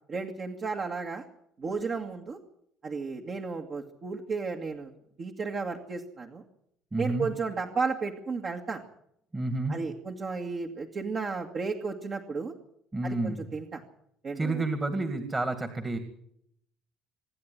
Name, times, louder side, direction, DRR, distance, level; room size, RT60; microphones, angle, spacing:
voice 1, 0.1-1.2 1.6-2.4 2.8-4.9 5.2-6.4 7.0-8.8 9.7-12.5 13.0-13.8 14.2-14.7, right 4 dB, 35° right, 2 dB, 2.1 m, -33 dB
voice 2, 6.9-7.3 9.3-9.8 12.9-13.4 14.4-16.0, right 2 dB, 15° right, 9 dB, 2.2 m, -30 dB
26.0 x 11.0 x 10.0 m, 0.73 s
cardioid pair, 135°, 0 cm